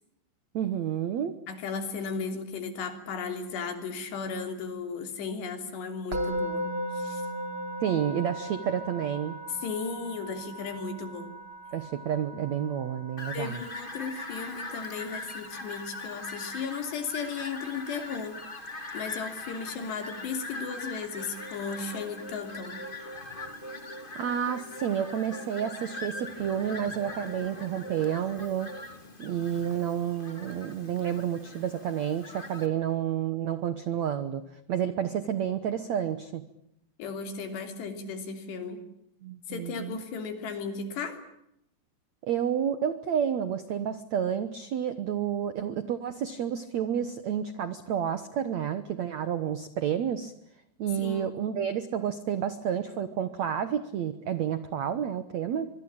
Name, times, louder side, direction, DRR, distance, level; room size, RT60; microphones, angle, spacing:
voice 1, 0.5-1.3 7.8-9.4 11.7-13.6 24.1-28.7 29.2-34.4 34.7-36.4 39.2-40.0 42.2-50.3 50.8-55.7, right 9 dB, 75° right, 12 dB, 1.6 m, -30 dB
voice 2, 1.5-6.7 6.9-7.3 9.6-11.3 13.3-22.8 37.0-38.8 39.5-41.2 51.0-51.4, left 5 dB, 75° left, 7 dB, 5.2 m, -35 dB
Musical instrument, 6.1-17.2, right 1 dB, 35° right, 3.1 m, -38 dB
Fowl, 13.2-32.7, left 2 dB, 20° left, 1.3 m, -42 dB
sound 1, 21.2-28.9, right 2 dB, 5° right, 3.9 m, -46 dB
25.0 x 23.5 x 8.9 m, 0.79 s
omnidirectional pair, 5.0 m